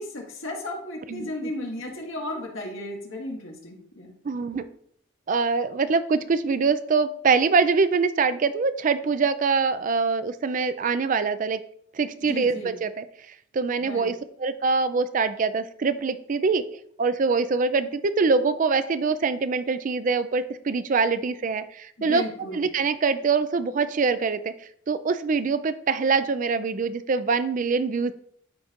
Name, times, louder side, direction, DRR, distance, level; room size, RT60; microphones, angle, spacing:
voice 1, 0.0-4.1 12.2-12.7 13.8-14.1 22.0-22.6, left 1 dB, 75° left, 0 dB, 1.7 m, -34 dB
voice 2, 1.1-1.5 4.2-4.7 5.3-11.6 11.9-13.0 13.5-16.6 17.0-22.2 22.5-28.1, right 4 dB, 40° right, 13 dB, 0.4 m, -24 dB
12.5 x 4.3 x 2.5 m, 0.67 s
head